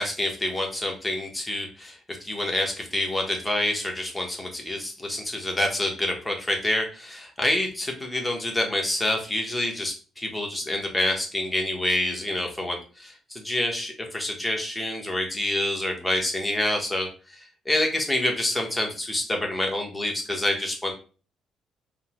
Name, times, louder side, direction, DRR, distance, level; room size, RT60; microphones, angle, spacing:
voice 1, 0.0-20.9, left 1 dB, 10° left, 2 dB, 0.9 m, -27 dB
3.4 x 2.1 x 2.9 m, 0.36 s
cardioid pair, 90°, 0 cm